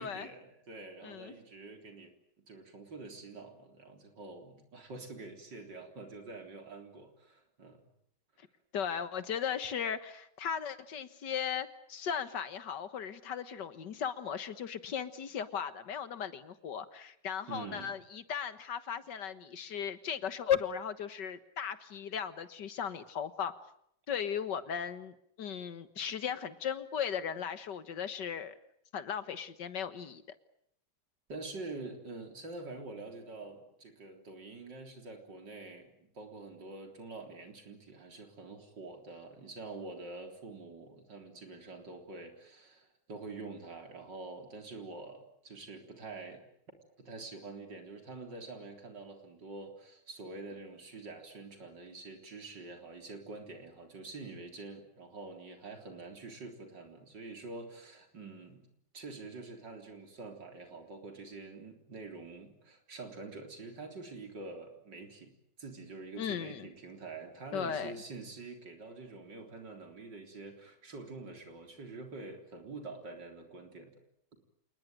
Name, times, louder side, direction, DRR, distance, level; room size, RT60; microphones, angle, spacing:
voice 1, 0.0-2.1 2.5-7.9 17.5-18.0 31.3-46.4 47.0-65.3 65.6-73.9, right 3 dB, 85° right, 4 dB, 4.4 m, -46 dB
voice 2, 1.0-1.3 8.7-23.5 24.1-28.6 28.9-30.2 66.2-66.7 67.5-67.9, left 8 dB, 80° left, 12 dB, 2.1 m, -37 dB
27.5 x 20.5 x 9.2 m, 0.72 s
omnidirectional pair, 1.9 m